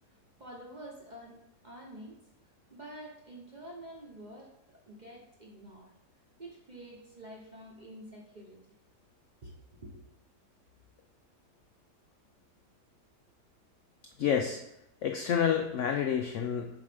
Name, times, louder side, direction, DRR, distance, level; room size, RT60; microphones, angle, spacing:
voice 1, 0.1-2.2 2.7-5.9 6.4-8.6 9.4-10.0, right 1 dB, 40° right, -2 dB, 0.7 m, -48 dB
voice 2, 14.2-14.6 15.0-16.7, left 8 dB, 75° left, 4 dB, 0.7 m, -28 dB
7.1 x 4.8 x 3.4 m, 0.81 s
omnidirectional pair, 1.8 m